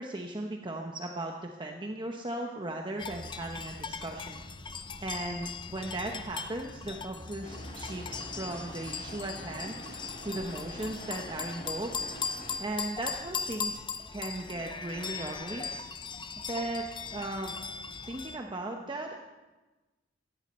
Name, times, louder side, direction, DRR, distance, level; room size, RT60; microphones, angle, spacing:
voice 1, 0.0-4.4 5.0-9.8 10.2-11.9 12.6-13.8 14.1-15.7 16.4-16.8 17.1-17.5 18.1-19.2, right 1 dB, 25° right, 2 dB, 1.0 m, -37 dB
sound 1, 3.0-18.4, left 5 dB, 25° left, 0.7 m, -39 dB
sound 2, 7.4-12.6, equal, 45° left, 4.1 m, -45 dB
17.0 x 14.0 x 4.4 m, 1.1 s
head